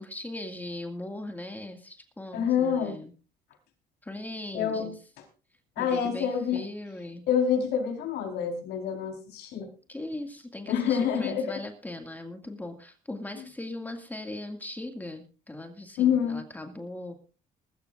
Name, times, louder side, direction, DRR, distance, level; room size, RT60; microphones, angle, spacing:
voice 1, 0.0-3.1 4.0-5.0 5.8-7.2 9.9-17.1, left 1 dB, 10° left, 5 dB, 2.1 m, -39 dB
voice 2, 2.3-3.0 4.5-4.9 5.8-6.6 7.3-9.7 10.7-11.5 16.0-16.4, left 8 dB, 80° left, 3 dB, 4.3 m, -27 dB
21.0 x 13.5 x 2.5 m, 0.34 s
cardioid pair, 110°, 17 cm